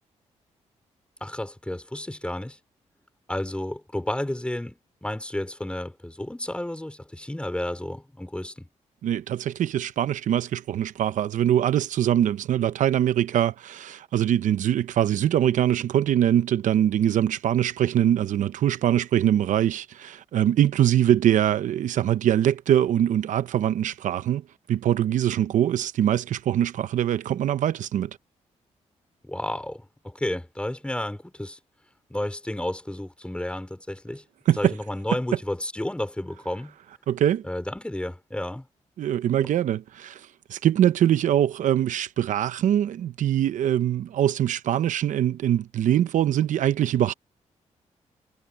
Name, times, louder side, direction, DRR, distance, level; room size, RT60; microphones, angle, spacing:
voice 1, 1.2-2.6 3.3-8.7 29.2-31.6 32.1-34.2 34.6-36.7 37.4-38.7 39.4-39.5, left 1 dB, 10° left, 5.1 m, -32 dB
voice 2, 9.0-28.1 34.5-34.7 37.1-37.5 39.0-47.1, right 11 dB, 80° right, 0.8 m, -23 dB
cardioid pair, 85°, 13 cm